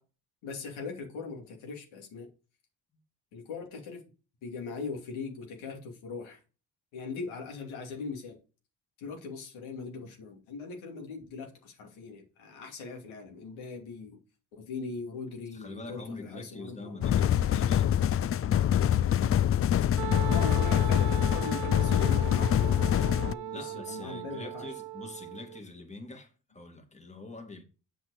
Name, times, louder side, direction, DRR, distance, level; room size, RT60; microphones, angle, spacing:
voice 1, 0.4-2.3 3.3-4.0 4.4-6.4 6.9-8.4 9.0-14.2 14.5-17.0 20.2-24.7, left 4 dB, 80° left, 2.8 m, -40 dB
voice 2, 15.6-17.9 23.5-27.6, left 2 dB, 15° left, 2.2 m, -44 dB
sound 1, 17.0-23.3, left 10 dB, 30° left, 0.4 m, -25 dB
Wind instrument woodwind instrument, 20.0-25.6, right 13 dB, 55° right, 0.6 m, -38 dB
8.0 x 6.0 x 4.9 m
supercardioid pair, 60°, 47 cm